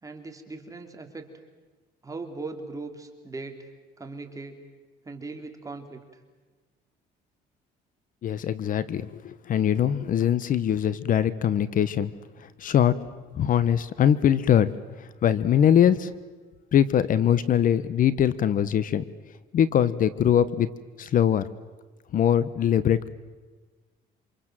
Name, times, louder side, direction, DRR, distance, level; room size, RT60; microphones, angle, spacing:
voice 1, 0.0-1.2 2.0-3.7 4.0-4.6 5.0-6.2, right 3 dB, 20° right, 4 dB, 3.2 m, -39 dB
voice 2, 8.2-12.1 12.6-13.0 13.3-14.7 15.2-16.1 16.7-19.0 19.5-20.7 21.0-21.5 22.1-23.1, left 9 dB, 55° left, 16 dB, 1.1 m, -22 dB
27.5 x 27.0 x 7.6 m, 1.3 s
cardioid pair, 110°, 17 cm